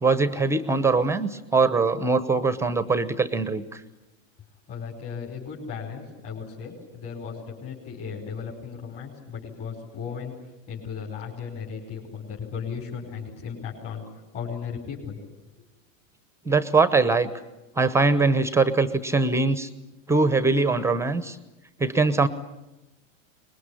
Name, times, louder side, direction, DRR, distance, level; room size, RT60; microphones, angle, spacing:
voice 1, 0.0-3.8 16.5-17.3 17.8-19.7 20.1-21.4 21.8-22.3, right 3 dB, 5° right, 13 dB, 0.8 m, -22 dB
voice 2, 4.7-10.3 10.7-14.0 14.3-15.2, left 6 dB, 35° left, -2 dB, 5.0 m, -36 dB
24.5 x 21.0 x 9.9 m, 1.0 s
supercardioid pair, 140°, 40 cm